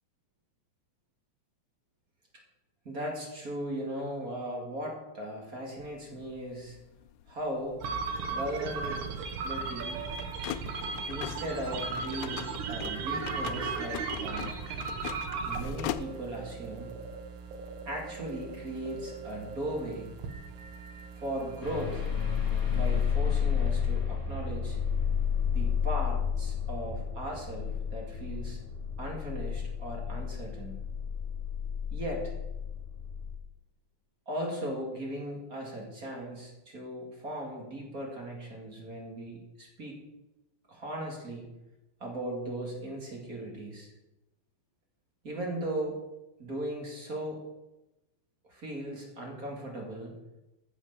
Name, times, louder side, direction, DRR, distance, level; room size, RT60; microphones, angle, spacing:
voice 1, 2.8-6.8 7.3-7.8 8.3-9.0 9.4-10.0 11.0-14.5 15.4-16.9 17.9-20.1 21.1-22.1 22.7-24.8 25.5-28.6 29.0-30.8 31.9-32.3 34.3-40.0 40.7-41.5 42.0-43.9 45.2-46.0 46.4-47.4 48.5-50.2, right 1 dB, 30° right, 0 dB, 2.6 m, -37 dB
sound 1, 5.8-16.5, left 11 dB, 80° left, 2.0 m, -42 dB
sound 2, 7.8-23.1, right 5 dB, 80° right, 2.7 m, -37 dB
sound 3, 21.6-33.3, left 7 dB, 20° left, 2.1 m, -31 dB
14.0 x 6.5 x 6.9 m, 0.96 s
omnidirectional pair, 3.5 m